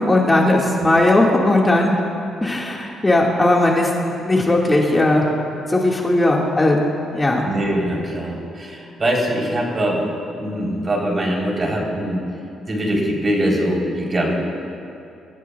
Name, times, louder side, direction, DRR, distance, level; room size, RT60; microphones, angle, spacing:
voice 1, 0.1-1.9 2.4-5.3 5.7-6.8 7.1-7.5, left 2 dB, 20° left, -2 dB, 1.7 m, -17 dB
voice 2, 7.4-10.1 10.4-12.2 12.7-14.4, right 1 dB, 35° right, -1 dB, 3.4 m, -22 dB
25.0 x 14.5 x 2.3 m, 2.6 s
cardioid pair, 90°, 0 cm